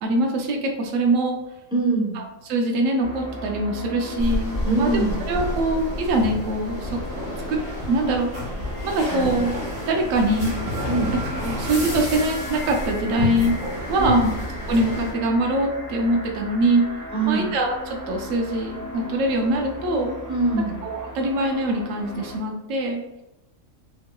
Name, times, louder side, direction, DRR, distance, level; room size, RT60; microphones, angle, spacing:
voice 1, 0.0-1.4 2.1-2.2 2.5-5.0 5.3-6.9 7.5-7.6 7.9-8.3 8.8-9.5 9.9-10.5 11.4-13.5 13.9-14.3 14.7-16.8 17.3-20.1 20.8-23.0, right 1 dB, 80° right, 2 dB, 1.0 m, -23 dB
voice 2, 1.7-2.2 4.6-5.2 9.1-9.3 10.9-11.1 14.0-14.3 17.1-17.5 20.3-20.8, right 3 dB, 5° right, -3 dB, 0.5 m, -23 dB
sound 1, 3.0-22.4, equal, 60° right, 1.6 m, -37 dB
sound 2, 4.2-15.1, left 1 dB, 40° right, 1.7 m, -30 dB
4.4 x 3.0 x 2.2 m, 0.92 s
omnidirectional pair, 1.3 m